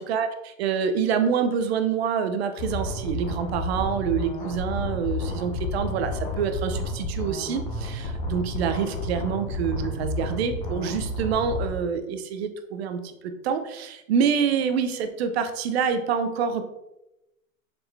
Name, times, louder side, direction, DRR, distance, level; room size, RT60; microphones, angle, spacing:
voice 1, 0.0-16.6, right 7 dB, 50° right, 8 dB, 0.7 m, -26 dB
sound 1, 2.6-11.7, left 2 dB, 30° left, 0.9 m, -31 dB
7.1 x 4.3 x 3.4 m, 0.91 s
supercardioid pair, 170°, 41 cm